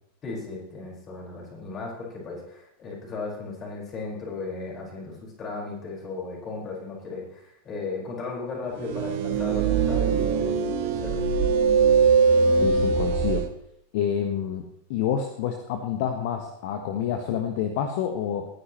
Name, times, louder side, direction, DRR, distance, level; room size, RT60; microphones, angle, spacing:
voice 1, 0.2-10.5 10.8-11.2, left 3 dB, 30° left, -2 dB, 5.0 m, -36 dB
sound 1, 8.8-13.5, right 5 dB, 50° right, 1.3 m, -21 dB
voice 2, 12.6-13.4 13.9-14.6 14.9-18.5, left 8 dB, 50° left, 6 dB, 1.2 m, -28 dB
21.0 x 9.8 x 3.1 m, 0.74 s
figure-of-eight pair, 90°, 0 cm